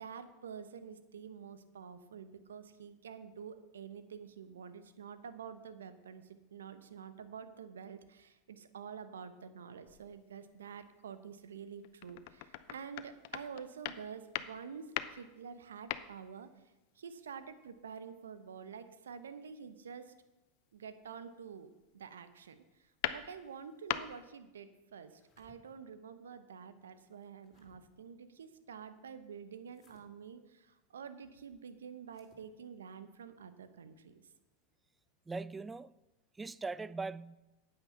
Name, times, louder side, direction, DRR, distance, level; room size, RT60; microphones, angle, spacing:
voice 1, 0.0-20.1 20.7-34.2, right 6 dB, 85° right, 0.8 m, -48 dB
sound 1, 9.9-10.4 10.8-11.0 11.6-16.6 17.1-17.5 19.5-19.7 20.8-21.1 21.4-22.0 22.4-24.3, left 14 dB, 60° left, 0.6 m, -42 dB
sound 2, 25.0-25.6 27.0-27.8 29.7-30.1 32.0-32.5, left 5 dB, 35° left, 2.9 m, -67 dB
voice 2, 35.3-35.9 36.4-37.4, right 3 dB, 15° right, 0.4 m, -40 dB
9.1 x 8.8 x 5.6 m
hypercardioid pair, 95°, 0 cm